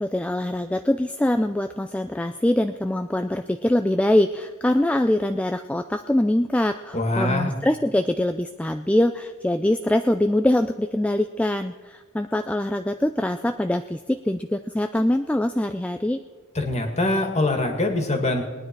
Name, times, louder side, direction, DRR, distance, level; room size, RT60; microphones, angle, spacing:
voice 1, 0.0-16.2, left 1 dB, 5° left, 7 dB, 0.3 m, -23 dB
voice 2, 6.9-7.5 16.6-18.4, left 2 dB, 30° left, 4 dB, 2.0 m, -23 dB
21.0 x 9.8 x 4.6 m, 1.4 s
head